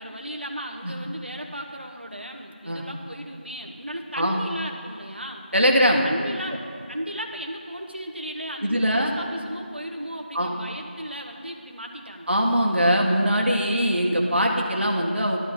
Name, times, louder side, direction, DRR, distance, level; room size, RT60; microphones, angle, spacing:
voice 1, 0.0-5.5 6.0-6.6 6.9-12.3, equal, 70° right, 2 dB, 1.5 m, -35 dB
voice 2, 5.5-6.0 8.6-9.1 10.3-10.5 12.3-15.4, equal, 85° right, 0 dB, 1.8 m, -21 dB
12.0 x 12.0 x 3.8 m, 2.3 s
figure-of-eight pair, 180°, 6 cm